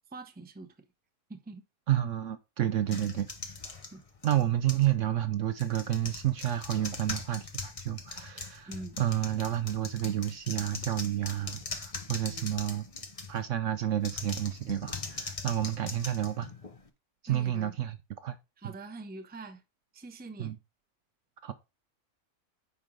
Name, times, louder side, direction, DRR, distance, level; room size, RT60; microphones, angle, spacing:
voice 1, 0.1-0.8 1.3-1.6 3.9-4.0 8.7-9.0 12.3-12.6 17.3-17.7 18.6-19.6 19.9-20.5, right 3 dB, 10° right, 0.6 m, -44 dB
voice 2, 1.9-3.3 4.2-8.7 9.0-12.8 13.3-16.5 17.2-18.4 18.6-18.7 20.4-20.6 21.4-21.5, right 12 dB, 65° right, 0.9 m, -30 dB
sound 1, 2.9-4.9 5.5-13.5 14.0-16.9, left 4 dB, 30° left, 0.8 m, -41 dB
9.8 x 4.8 x 3.7 m
omnidirectional pair, 1.6 m